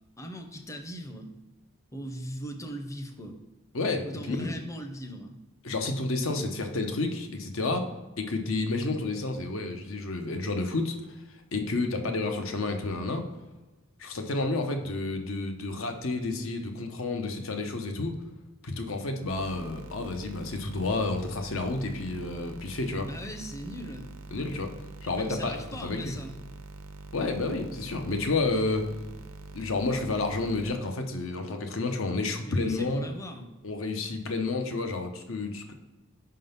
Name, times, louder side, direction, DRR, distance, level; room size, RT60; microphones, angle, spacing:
voice 1, 0.2-1.3 1.9-3.4 4.0-5.4 23.0-24.1 25.1-26.4 32.4-33.5, equal, 15° left, 5 dB, 0.6 m, -39 dB
voice 2, 3.7-4.6 5.6-11.1 11.5-13.2 14.0-18.1 18.6-23.1 24.3-24.7 25.0-26.1 27.1-28.9 29.5-33.0 33.6-35.7, left 3 dB, 75° left, 5 dB, 0.8 m, -30 dB
sound 1, 19.3-30.8, right 2 dB, 85° right, 0.6 m, -45 dB
5.6 x 3.8 x 5.3 m, 1.1 s
head